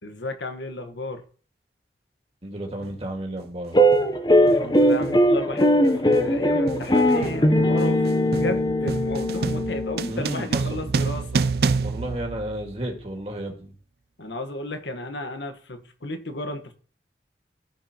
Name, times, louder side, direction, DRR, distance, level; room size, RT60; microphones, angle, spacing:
voice 1, 0.0-1.2 4.3-11.4 14.2-16.7, left 1 dB, 85° left, 7 dB, 1.4 m, -33 dB
voice 2, 2.4-3.8 10.1-10.4 10.7-10.8 11.8-13.7, right 1 dB, 35° right, 2 dB, 1.9 m, -32 dB
sound 1, 2.8-3.0 3.9-4.2 4.5-13.0, right 4 dB, 60° right, 0.4 m, -29 dB
sound 2, 3.7-10.3, equal, 25° left, 0.8 m, -20 dB
15.0 x 5.5 x 3.0 m, 0.42 s
head